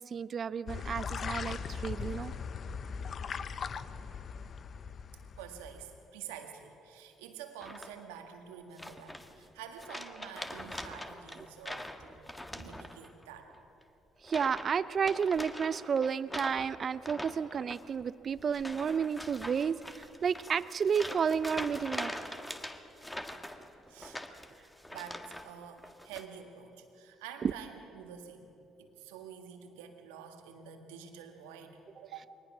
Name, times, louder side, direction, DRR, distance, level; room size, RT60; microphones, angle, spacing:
voice 1, 0.0-2.3 14.2-22.1 27.4-27.5, right 6 dB, 50° right, 17 dB, 0.6 m, -31 dB
sound 1, 0.7-6.0, left 6 dB, 50° left, 0.7 m, -39 dB
voice 2, 5.4-13.5 23.9-24.2 24.9-28.5 28.8-32.2, right 8 dB, 85° right, 5 dB, 1.7 m, -48 dB
sound 2, 7.6-8.2 8.8-9.5 9.8-13.2 13.5-13.8 14.2-14.7 15.0-25.5 25.8-26.2, left 1 dB, 10° left, 1.7 m, -43 dB
23.0 x 19.5 x 6.1 m, 2.9 s
hypercardioid pair, 55°, 0 cm